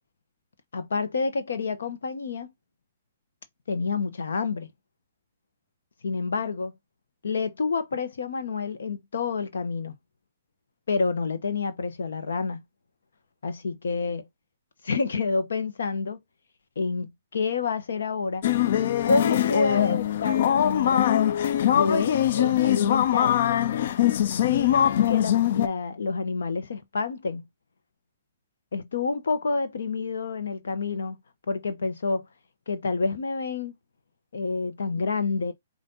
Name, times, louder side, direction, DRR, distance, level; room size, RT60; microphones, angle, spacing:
voice 1, 0.7-2.5 3.7-4.7 6.0-6.7 7.2-9.9 10.9-12.6 13.4-14.3 14.8-16.2 16.8-18.4 18.8-21.0 21.7-23.6 24.5-27.4 28.7-31.2 31.5-32.3 32.7-33.7 34.3-35.5, left 4 dB, 85° left, 0.8 m, -28 dB
sound 1, 18.4-25.7, left 11 dB, 55° left, 0.4 m, -22 dB
5.2 x 2.5 x 2.7 m
hypercardioid pair, 155°, 0 cm